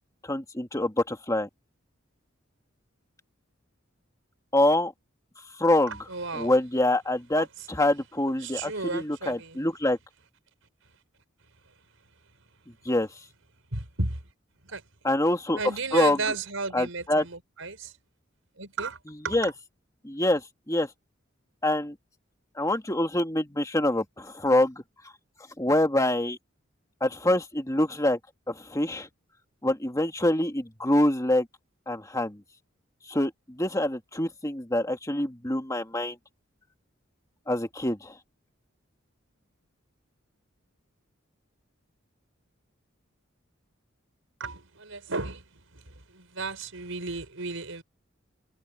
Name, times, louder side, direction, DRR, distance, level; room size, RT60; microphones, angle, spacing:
voice 1, 0.2-1.5 4.5-4.9 5.6-6.0 6.3-10.0 12.9-13.1 15.0-15.6 15.9-16.2 16.7-17.2 19.3-19.5 20.0-20.9 21.6-22.0 22.6-24.8 25.6-26.4 27.0-28.2 28.5-29.1 29.6-31.5 31.9-32.4 33.1-36.2 37.5-38.2, left 1 dB, 15° left, 2.0 m, -25 dB
voice 2, 5.9-6.5 7.3-7.5 8.4-9.6 13.7-14.2 14.6-14.8 15.5-17.9 18.6-19.0 19.2-19.5 44.4-47.8, right 3 dB, 85° right, 4.8 m, -33 dB
head